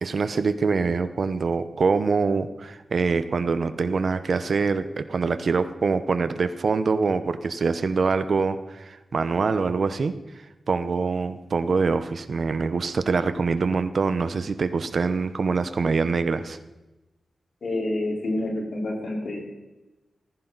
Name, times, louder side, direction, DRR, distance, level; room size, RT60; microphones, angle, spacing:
voice 1, 0.0-10.1 10.7-16.6, right 4 dB, 50° right, 11 dB, 0.8 m, -24 dB
voice 2, 17.6-19.4, left 1 dB, 60° left, -1 dB, 4.0 m, -28 dB
18.5 x 15.0 x 4.0 m, 1.0 s
wide cardioid pair, 170°, 0 cm